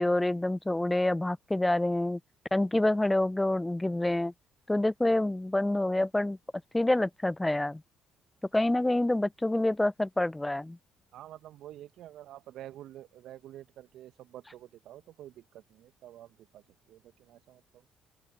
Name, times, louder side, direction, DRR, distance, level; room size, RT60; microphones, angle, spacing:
voice 1, 0.0-2.2 2.5-4.3 4.7-6.4 6.7-7.8 8.5-10.8, left 1 dB, 10° left, 0.7 m, -27 dB
voice 2, 11.1-17.8, right 13 dB, 60° right, 1.3 m, -49 dB
open air
figure-of-eight pair, 45°, 0 cm